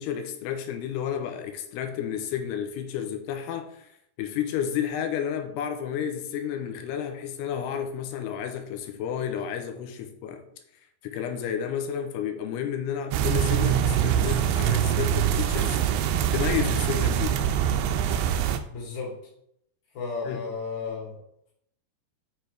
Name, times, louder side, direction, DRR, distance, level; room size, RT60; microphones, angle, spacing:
voice 1, 0.0-3.9 4.2-10.5 11.0-15.8 16.3-17.4 20.3-20.4, left 8 dB, 85° left, 6 dB, 2.6 m, -31 dB
sound 1, 13.1-18.6, right 9 dB, 90° right, 2.8 m, -24 dB
voice 2, 18.7-19.2 19.9-21.2, left 4 dB, 50° left, -3 dB, 3.2 m, -34 dB
7.9 x 5.9 x 3.4 m, 0.71 s
omnidirectional pair, 4.9 m